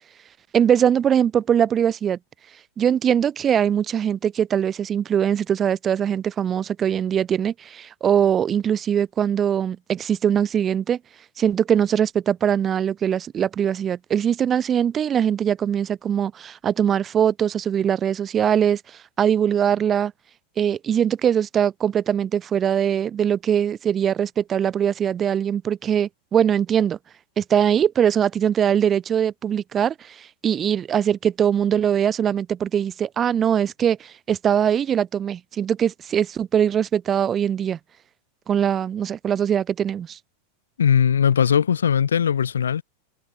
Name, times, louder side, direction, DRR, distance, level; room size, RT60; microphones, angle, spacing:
voice 1, 0.5-2.2 2.8-11.0 11.4-18.8 19.2-20.1 20.6-27.0 27.4-37.8 38.5-40.2, right 9 dB, 25° right, 0.5 m, -21 dB
voice 2, 40.8-42.8, left 8 dB, 70° left, 0.3 m, -19 dB
figure-of-eight pair, 90°, 0 cm